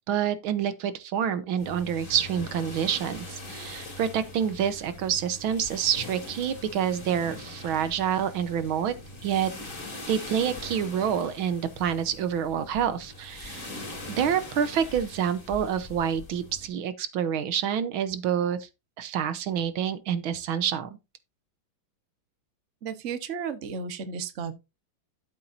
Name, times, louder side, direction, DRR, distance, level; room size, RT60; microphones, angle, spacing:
voice 1, 0.1-8.9 9.2-9.5 10.1-13.7 14.1-18.7 19.0-21.0, right 8 dB, 80° right, 1.8 m, -27 dB
sound 1, 1.6-16.7, left 1 dB, 40° left, 3.6 m, -42 dB
voice 2, 22.8-24.5, right 6 dB, 45° right, 1.3 m, -33 dB
12.5 x 7.6 x 2.7 m
omnidirectional pair, 2.2 m